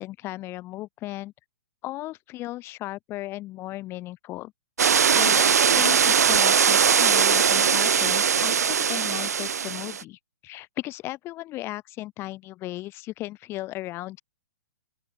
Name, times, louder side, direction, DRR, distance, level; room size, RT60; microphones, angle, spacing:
voice 1, 0.0-1.3 1.8-4.5 4.8-14.2, left 17 dB, 30° left, 4.6 m, -36 dB
sound 1, 4.8-10.0, right 7 dB, 70° right, 1.2 m, -20 dB
open air
figure-of-eight pair, 120°, 9 cm